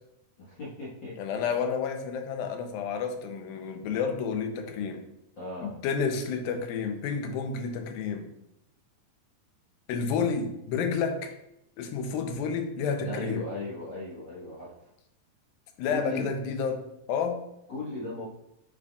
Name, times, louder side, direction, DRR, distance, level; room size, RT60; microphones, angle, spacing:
voice 1, 0.4-1.1 5.4-5.7 13.0-14.7 15.9-16.3 17.7-18.2, left 2 dB, 55° left, -8 dB, 1.2 m, -36 dB
voice 2, 1.2-5.1 5.6-8.3 9.9-11.3 11.8-13.5 15.8-16.8 17.1-17.4, left 5 dB, 85° left, 6 dB, 2.5 m, -30 dB
9.0 x 5.2 x 2.3 m, 0.80 s
omnidirectional pair, 4.2 m